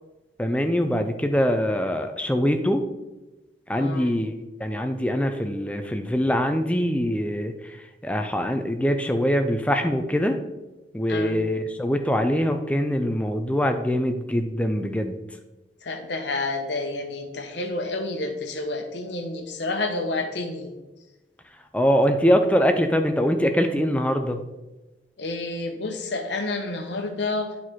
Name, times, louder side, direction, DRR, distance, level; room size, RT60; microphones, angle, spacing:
voice 1, 0.4-2.8 3.7-4.3 4.6-7.8 8.0-10.4 10.9-15.2 21.7-24.4, equal, 5° left, 6 dB, 0.5 m, -23 dB
voice 2, 3.8-4.1 11.1-11.4 15.8-20.7 25.2-27.5, left 2 dB, 75° left, 5 dB, 1.0 m, -29 dB
8.7 x 4.2 x 4.6 m, 1.1 s
head